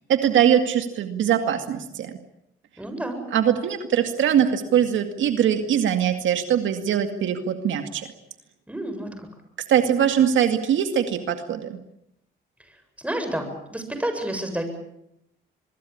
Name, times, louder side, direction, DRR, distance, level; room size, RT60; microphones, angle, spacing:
voice 1, 0.1-2.2 3.3-8.1 9.7-11.8, right 9 dB, 75° right, 7 dB, 2.2 m, -22 dB
voice 2, 2.8-3.2 8.7-9.3 13.0-14.6, right 1 dB, 5° right, 7 dB, 7.7 m, -30 dB
24.5 x 22.5 x 8.7 m, 0.80 s
cardioid pair, 90°, 20 cm